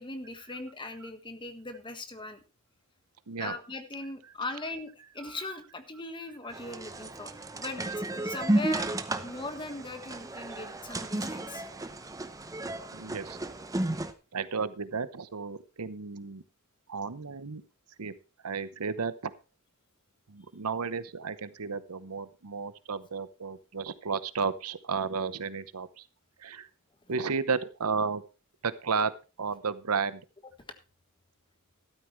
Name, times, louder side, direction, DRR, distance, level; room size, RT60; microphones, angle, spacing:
voice 1, 0.0-2.4 3.4-11.6, left 2 dB, 20° left, 8 dB, 1.5 m, -40 dB
sound 1, 6.5-14.1, right 1 dB, 15° right, 0.8 m, -33 dB
voice 2, 12.9-13.4 14.3-16.4 16.9-17.6 18.0-18.1 18.4-19.3 20.3-26.1 26.4-26.7 27.1-28.2 28.6-29.1 29.4-30.2, right 5 dB, 90° right, 14 dB, 0.9 m, -33 dB
13.0 x 12.5 x 3.2 m, 0.31 s
head